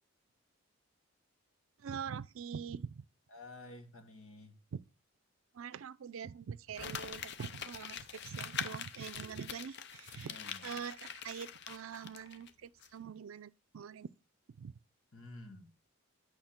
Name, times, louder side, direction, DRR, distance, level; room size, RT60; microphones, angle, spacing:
voice 1, 1.8-3.0 4.7-4.8 5.5-10.4 10.6-14.1 14.6-14.7, right 7 dB, 75° right, 0.4 m, -44 dB
voice 2, 3.3-4.6 10.3-10.7 15.1-15.7, left 2 dB, 85° left, 1.9 m, -51 dB
Crumpling crinkling, 6.7-12.5 12.8-12.9, left 7 dB, 55° left, 0.6 m, -44 dB
8.7 x 6.0 x 4.4 m
head